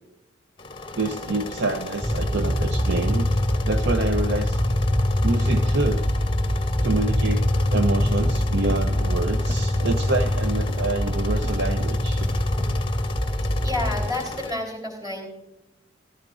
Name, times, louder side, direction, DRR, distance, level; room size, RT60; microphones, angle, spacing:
sound 1, 0.6-14.5, left 3 dB, 25° left, 0.7 m, -35 dB
voice 1, 0.9-3.3 3.7-4.6 5.2-6.1 6.8-12.2, right 3 dB, 55° right, 6 dB, 0.6 m, -27 dB
sound 2, 2.0-14.1, left 1 dB, 5° left, 1.8 m, -23 dB
sound 3, 8.3-12.8 13.6-14.5, equal, 75° right, 1.9 m, -41 dB
voice 2, 13.6-15.3, left 2 dB, 20° right, 1 dB, 3.8 m, -29 dB
15.5 x 14.5 x 2.5 m, 0.91 s
head